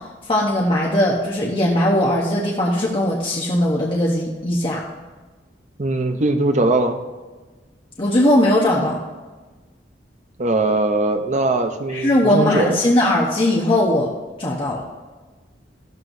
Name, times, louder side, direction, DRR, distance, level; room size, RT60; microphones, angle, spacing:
voice 1, 0.3-4.8 8.0-9.0 11.9-14.1 14.4-14.8, left 1 dB, 30° left, -3 dB, 1.0 m, -19 dB
voice 2, 5.8-7.0 10.4-12.8, right 2 dB, 40° right, 6 dB, 0.7 m, -20 dB
14.5 x 12.0 x 2.7 m, 1.3 s
head